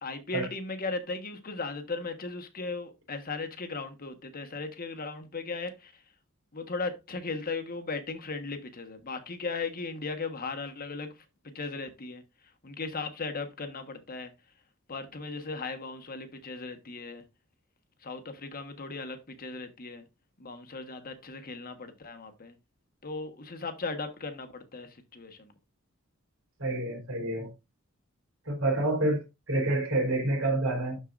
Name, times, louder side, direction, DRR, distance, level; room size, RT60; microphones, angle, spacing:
voice 1, 0.0-6.0 6.5-12.2 12.6-14.3 14.9-17.2 18.0-20.0 20.4-22.6 23.0-25.5, left 3 dB, 45° left, 1.3 m, -37 dB
voice 2, 26.6-27.5 28.5-31.0, right 2 dB, 75° right, 3.9 m, -28 dB
12.0 x 4.6 x 2.5 m
head